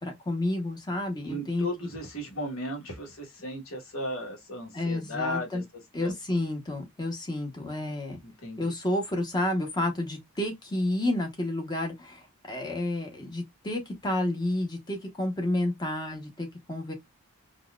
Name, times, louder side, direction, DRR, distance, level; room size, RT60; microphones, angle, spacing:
voice 1, 0.0-1.7 4.7-5.6 5.9-8.2 8.6-16.9, left 1 dB, 20° left, 0.9 m, -30 dB
voice 2, 1.2-5.6 6.0-6.4 8.2-8.7, left 1 dB, 70° left, 1.3 m, -36 dB
4.0 x 2.3 x 2.3 m
head